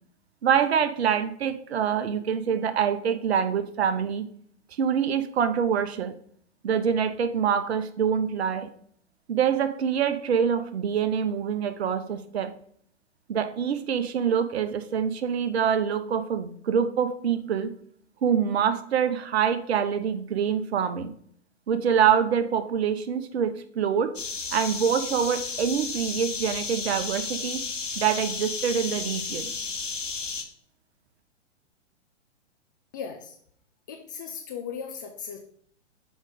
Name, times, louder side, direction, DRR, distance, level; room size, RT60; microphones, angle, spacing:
voice 1, 0.4-4.2 4.8-6.1 6.6-8.7 9.3-12.5 13.3-17.7 18.2-21.1 21.7-24.1 24.5-27.6 28.0-29.5, right 7 dB, 60° right, 10 dB, 0.8 m, -25 dB
sound 1, 24.1-30.4, left 4 dB, 80° left, 1.3 m, -33 dB
voice 2, 32.9-33.4 33.9-35.4, left 7 dB, 20° left, 3 dB, 0.3 m, -37 dB
6.3 x 5.1 x 3.6 m, 0.62 s
figure-of-eight pair, 115°, 37 cm